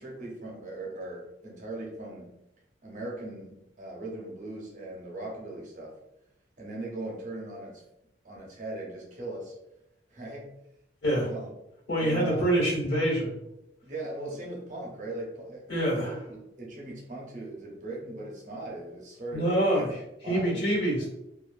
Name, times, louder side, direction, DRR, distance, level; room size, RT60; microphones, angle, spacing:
voice 1, 0.0-2.3 2.8-5.9 6.6-7.8 8.2-9.5 10.1-10.5 11.2-11.5 12.0-12.6 13.8-19.9 20.2-20.6, right 2 dB, 45° right, -2 dB, 0.6 m, -39 dB
voice 2, 11.9-13.4 15.7-16.2 19.3-20.0 20.3-21.1, right 1 dB, 70° left, -3 dB, 1.1 m, -26 dB
2.4 x 2.2 x 2.3 m, 0.87 s
head